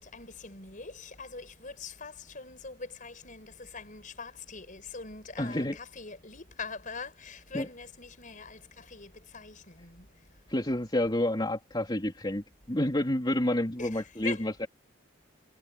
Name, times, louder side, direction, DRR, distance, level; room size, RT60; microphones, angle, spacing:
voice 1, 0.0-10.1 13.8-14.5, left 4 dB, 45° left, 5.6 m, -43 dB
voice 2, 5.4-5.8 7.5-7.7 10.5-14.7, left 1 dB, 25° left, 3.2 m, -29 dB
head